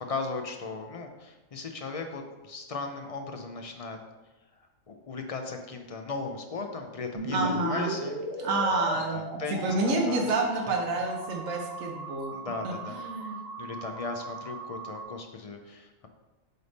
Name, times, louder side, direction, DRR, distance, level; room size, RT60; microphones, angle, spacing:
voice 1, 0.1-4.0 4.6-8.5 9.1-10.3 12.3-13.0 13.6-16.1, left 3 dB, 50° left, 4 dB, 0.4 m, -37 dB
sound 1, 7.1-15.0, right 1 dB, 40° right, 1.7 m, -38 dB
voice 2, 7.3-7.9 8.4-12.3 12.6-13.4, right 2 dB, 80° right, 0 dB, 1.2 m, -29 dB
8.1 x 3.4 x 4.1 m, 1.1 s
omnidirectional pair, 1.4 m